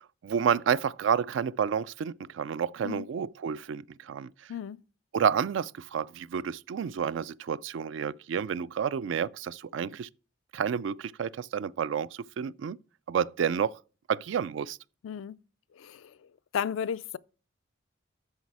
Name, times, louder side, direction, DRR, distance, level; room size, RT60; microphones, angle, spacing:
voice 1, 0.0-4.3 5.1-10.1 10.5-12.8 13.1-13.8 14.1-14.8, right 7 dB, 70° right, 0.3 m, -30 dB
voice 2, 4.5-4.8 15.0-15.4 15.7-16.2 16.5-17.2, left 7 dB, 80° left, 0.4 m, -34 dB
8.1 x 6.6 x 4.7 m
head